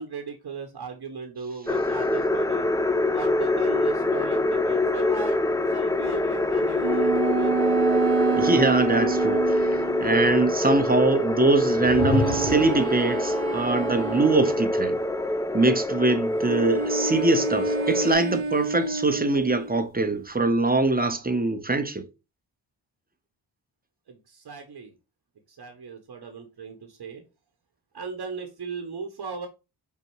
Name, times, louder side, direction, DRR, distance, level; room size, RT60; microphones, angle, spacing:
voice 1, 0.0-2.7 3.1-5.4 5.7-7.8 24.1-25.0 25.5-27.2 27.9-29.5, right 5 dB, 50° right, 1.1 m, -37 dB
sound 1, 1.7-18.1, left 1 dB, 10° left, 0.4 m, -25 dB
sound 2, 6.8-10.3 11.9-14.9 16.4-19.8, right 6 dB, 85° right, 1.0 m, -29 dB
voice 2, 8.4-15.0 15.5-22.1, right 2 dB, 20° right, 0.9 m, -23 dB
sound 3, 11.7-12.9, left 6 dB, 55° left, 0.9 m, -29 dB
5.2 x 2.3 x 4.4 m
supercardioid pair, 45°, 48 cm